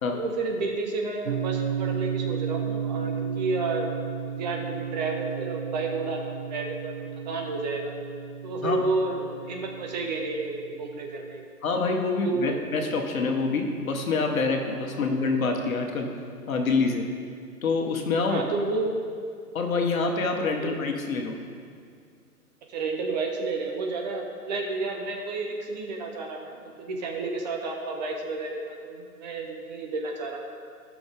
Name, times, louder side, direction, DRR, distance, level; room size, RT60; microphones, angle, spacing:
voice 1, 0.1-3.9 4.3-8.0 8.4-11.6 12.1-12.6 14.9-15.0 18.3-19.0 20.6-20.8 22.7-30.4, right 3 dB, 30° right, 2 dB, 0.9 m, -31 dB
sound 1, 1.3-11.4, right 8 dB, 50° right, 0.5 m, -33 dB
voice 2, 11.6-16.1 16.5-17.0 17.6-18.4 19.5-21.3, left 4 dB, 60° left, 3 dB, 1.5 m, -26 dB
16.0 x 6.2 x 3.6 m, 2.2 s
figure-of-eight pair, 135°, 46 cm